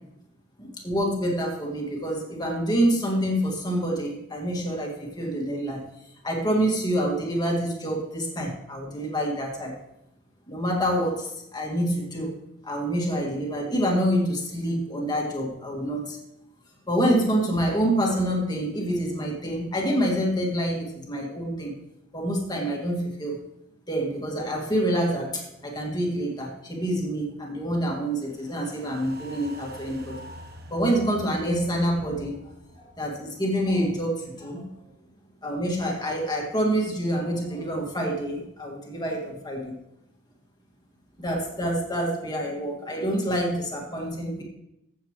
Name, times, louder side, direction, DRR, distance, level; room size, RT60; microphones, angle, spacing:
voice 1, 0.6-5.8 6.2-9.7 10.5-12.3 12.6-16.2 16.9-21.8 22.1-23.4 23.9-30.2 30.7-32.4 32.8-34.7 35.4-39.7 41.2-44.4, equal, 20° left, -1 dB, 2.2 m, -27 dB
sound 1, 28.2-34.6 34.9-35.0, equal, 50° right, 1.2 m, -46 dB
15.0 x 7.5 x 3.2 m, 0.83 s
head